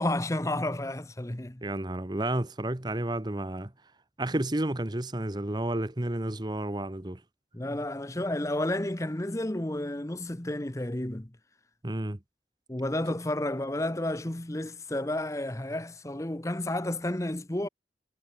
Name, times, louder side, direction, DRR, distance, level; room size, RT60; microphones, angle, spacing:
voice 1, 0.0-1.6 7.5-11.3 12.7-17.7, left 1 dB, 15° left, 0.9 m, -31 dB
voice 2, 1.6-3.7 4.2-7.2 11.8-12.2, right 1 dB, 25° right, 1.1 m, -31 dB
head